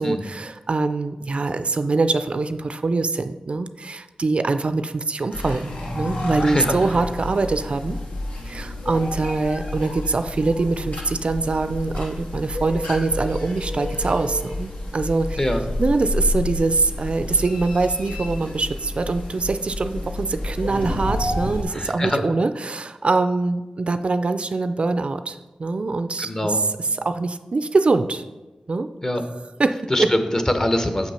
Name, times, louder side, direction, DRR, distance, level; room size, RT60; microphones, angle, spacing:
voice 1, 0.0-8.0 8.5-15.4 15.8-26.6 27.0-28.2 28.7-28.9 29.6-30.1, right 3 dB, 50° right, 10 dB, 0.4 m, -23 dB
sound 1, 5.3-21.6, left 1 dB, 75° left, 1.9 m, -30 dB
voice 2, 6.4-6.8 15.4-15.6 21.7-22.2 26.2-26.6 29.0-29.2 29.9-31.1, left 1 dB, 25° left, 7 dB, 0.9 m, -23 dB
7.5 x 6.0 x 5.7 m, 1.2 s
wide cardioid pair, 100°, 2 cm